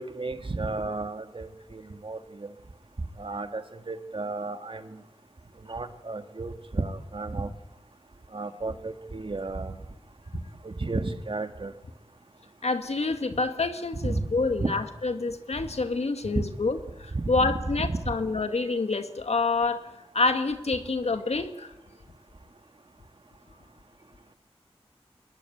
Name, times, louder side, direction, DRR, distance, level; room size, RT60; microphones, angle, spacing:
voice 1, 0.0-2.5 3.2-5.0 5.7-7.5 8.3-9.8 10.6-11.7 14.0-14.3 14.6-14.7 16.4-16.5 17.1-18.1, right 3 dB, 55° right, 8 dB, 2.1 m, -32 dB
voice 2, 12.6-19.8 20.1-21.7, left 3 dB, 80° left, 8 dB, 2.0 m, -27 dB
22.0 x 21.0 x 9.3 m, 0.97 s
wide cardioid pair, 60°, 11 cm